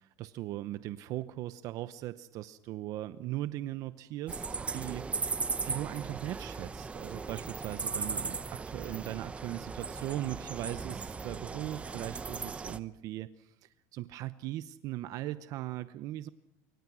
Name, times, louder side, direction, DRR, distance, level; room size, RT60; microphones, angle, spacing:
voice 1, 0.0-5.4 5.7-16.3, right 15 dB, 50° right, 13 dB, 0.8 m, -39 dB
sound 1, 4.3-12.8, right 4 dB, 15° right, 1.0 m, -37 dB
27.0 x 24.5 x 6.2 m, 0.85 s
supercardioid pair, 140°, 7 cm